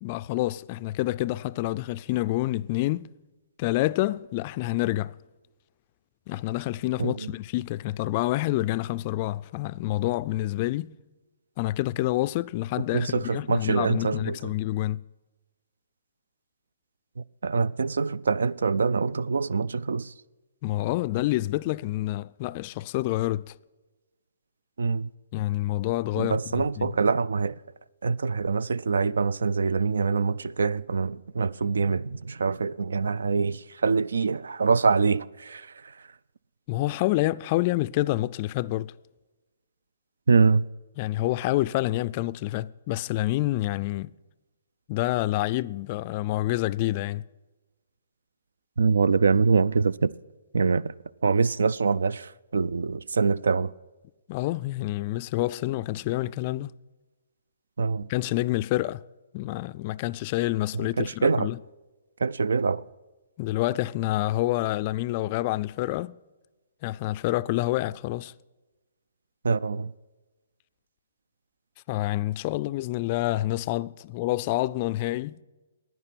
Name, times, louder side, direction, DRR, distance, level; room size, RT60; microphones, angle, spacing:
voice 1, 0.0-3.1 3.6-5.1 6.3-10.9 11.6-15.0 20.6-23.5 25.3-26.9 36.7-38.9 41.0-44.1 44.9-47.2 54.3-56.7 58.1-59.0 59.3-61.6 63.4-66.1 66.8-68.3 71.9-75.4, left 17 dB, 35° left, 0.3 m, -28 dB
voice 2, 7.0-7.3 12.9-14.4 17.4-20.1 24.8-25.1 26.2-27.6 28.0-35.7 40.3-40.6 48.8-50.1 50.5-50.9 51.2-53.7 57.8-58.1 60.7-61.5 62.2-62.8 69.4-69.9, right 4 dB, 80° right, 0.3 m, -24 dB
11.0 x 9.4 x 8.4 m
hypercardioid pair, 145°, 0 cm